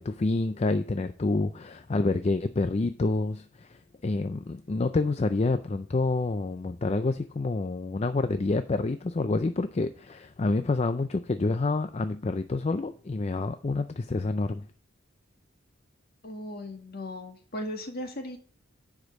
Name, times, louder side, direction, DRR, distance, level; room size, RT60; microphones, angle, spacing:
voice 1, 0.0-14.7, left 3 dB, 30° left, 0.4 m, -28 dB
voice 2, 16.2-18.4, left 1 dB, 50° left, 1.9 m, -37 dB
10.5 x 5.1 x 7.1 m
head